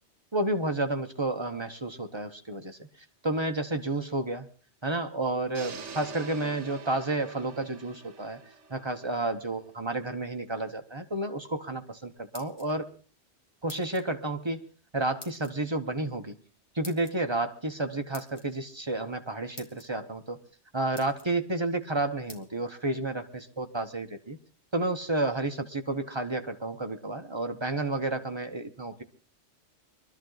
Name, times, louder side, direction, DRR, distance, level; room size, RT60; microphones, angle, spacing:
voice 1, 0.3-2.9 3.2-4.5 4.8-8.4 8.7-12.9 13.6-14.6 14.9-16.3 16.8-20.4 20.7-24.4 24.7-29.0, right 2 dB, 25° right, 6 dB, 1.0 m, -31 dB
sound 1, 5.5-9.6, right 5 dB, 80° right, 1.4 m, -45 dB
sound 2, 12.1-13.0 13.7-14.1 15.2-15.5 16.8-17.2 18.1-18.5 19.2-19.3 19.6-19.9 20.5-20.6 20.9-21.3 22.3-22.4, left 2 dB, 40° left, 1.7 m, -47 dB
22.5 x 13.0 x 4.0 m, 0.38 s
omnidirectional pair, 1.2 m